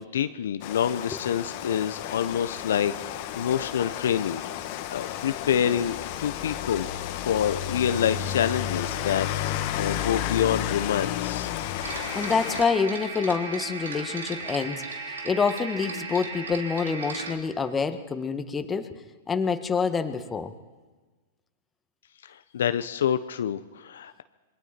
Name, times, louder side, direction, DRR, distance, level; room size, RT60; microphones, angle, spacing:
voice 1, 0.0-4.4 4.9-6.9 7.2-11.5 22.5-24.2, left 9 dB, 70° left, 11 dB, 0.8 m, -27 dB
Rain, 0.6-12.6, left 11 dB, 50° left, 1.7 m, -32 dB
voice 2, 11.8-18.9 19.3-20.5, left 5 dB, 15° left, 8 dB, 1.7 m, -27 dB
sound 1, 11.8-17.4, right 4 dB, 80° right, 3.0 m, -36 dB
27.5 x 22.5 x 4.5 m, 1.3 s
hypercardioid pair, 110°, 0 cm